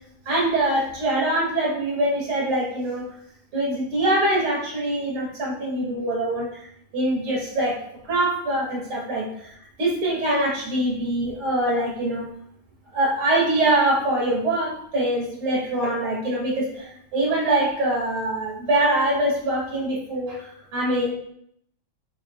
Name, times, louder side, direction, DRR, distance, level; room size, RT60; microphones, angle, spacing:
voice 1, 0.3-3.1 3.5-6.7 6.9-9.5 9.8-12.3 12.9-21.1, right 1 dB, 90° right, -4 dB, 3.5 m, -24 dB
9.4 x 7.1 x 2.5 m, 0.68 s
omnidirectional pair, 2.3 m